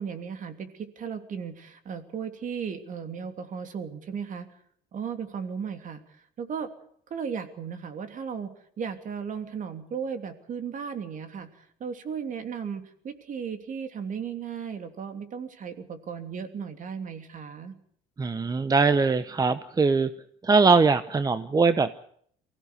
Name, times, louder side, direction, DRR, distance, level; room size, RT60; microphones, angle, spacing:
voice 1, 0.0-4.5 4.9-6.0 6.4-6.7 7.1-17.7, right 6 dB, 50° right, 8 dB, 2.9 m, -35 dB
voice 2, 18.2-20.1 20.4-21.9, right 4 dB, 20° right, 12 dB, 0.8 m, -21 dB
24.0 x 16.5 x 8.1 m, 0.64 s
cardioid pair, 110°, 17 cm